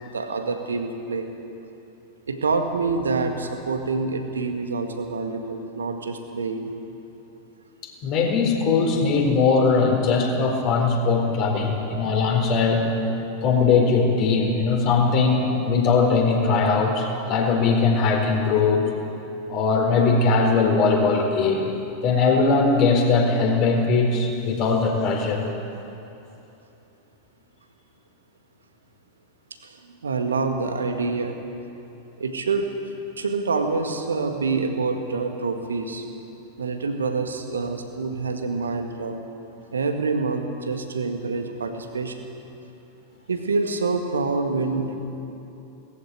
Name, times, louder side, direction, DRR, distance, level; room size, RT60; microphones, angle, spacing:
voice 1, 0.1-1.3 2.3-6.7 29.6-29.8 30.0-31.4 32.2-32.7 33.2-36.1 36.6-39.2 39.7-42.3 43.3-45.0, right 4 dB, 70° right, 6 dB, 1.8 m, -26 dB
voice 2, 7.8-12.8 13.4-18.9 19.5-21.7 22.0-25.4, left 4 dB, 40° left, 1 dB, 4.3 m, -20 dB
19.5 x 14.5 x 9.4 m, 2.9 s
figure-of-eight pair, 90°, 0 cm